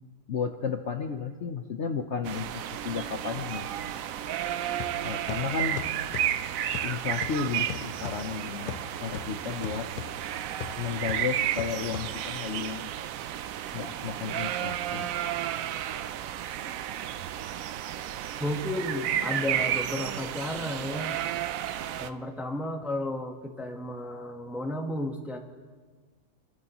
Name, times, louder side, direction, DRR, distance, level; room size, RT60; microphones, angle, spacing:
voice 1, 0.3-3.7 5.0-5.8 6.8-9.9 10.8-12.9 13.7-15.1, left 6 dB, 55° left, 5 dB, 0.9 m, -33 dB
sound 1, 2.2-22.1, right 11 dB, 70° right, 0.9 m, -32 dB
sound 2, 4.8-12.5, left 10 dB, 80° left, 1.1 m, -41 dB
voice 2, 18.4-21.2 22.0-25.4, left 1 dB, ahead, 3 dB, 0.9 m, -33 dB
27.0 x 12.5 x 3.0 m, 1.5 s
omnidirectional pair, 1.7 m